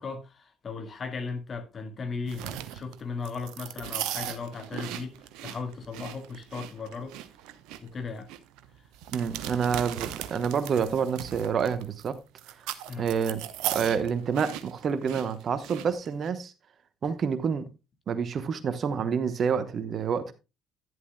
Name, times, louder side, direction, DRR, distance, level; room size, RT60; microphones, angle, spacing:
voice 1, 0.0-7.2 7.8-8.3 12.9-13.1, left 4 dB, 35° left, 1.8 m, -37 dB
Eating chips munching smacking bag rustle, 2.3-16.3, right 12 dB, 65° right, 0.8 m, -38 dB
voice 2, 9.1-12.2 12.5-12.6 13.0-13.4 13.7-16.5 17.0-17.7 18.1-20.3, right 6 dB, 45° right, 1.0 m, -28 dB
11.0 x 11.0 x 2.2 m
figure-of-eight pair, 50°, 0 cm